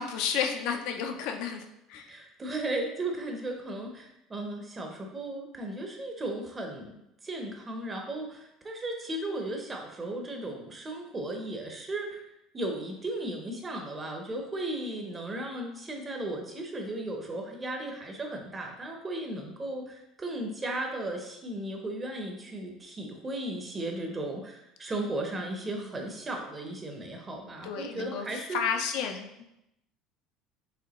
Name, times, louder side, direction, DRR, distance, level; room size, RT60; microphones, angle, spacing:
voice 1, 0.0-1.6 1.9-2.0 25.7-25.8 27.6-28.2 28.5-29.3, left 7 dB, 70° left, 5 dB, 0.5 m, -31 dB
voice 2, 2.0-12.2 12.5-28.6, right 1 dB, 20° right, 2 dB, 0.7 m, -36 dB
4.9 x 3.4 x 3.0 m, 0.84 s
cardioid pair, 150°, 0 cm